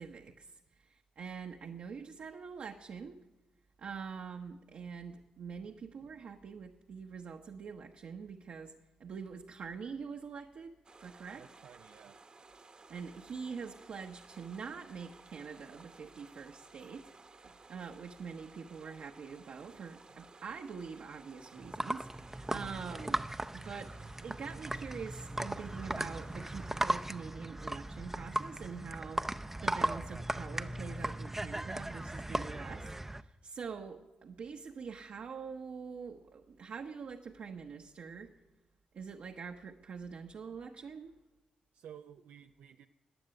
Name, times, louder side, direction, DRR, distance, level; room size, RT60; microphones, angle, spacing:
voice 1, 0.0-3.2 3.8-8.7 9.0-10.7 11.0-11.4 12.9-23.9 24.2-38.3 38.9-41.1, right 6 dB, 65° right, 2 dB, 1.0 m, -45 dB
sound 1, 10.8-27.0, right 3 dB, 35° right, 1.0 m, -57 dB
voice 2, 11.4-12.2 22.5-22.8 41.7-42.9, right 9 dB, 85° right, 6 dB, 0.5 m, -53 dB
sound 2, 21.6-33.2, right 1 dB, 10° right, 0.5 m, -37 dB
15.5 x 9.5 x 9.1 m, 1.0 s
cardioid pair, 90°, 3 cm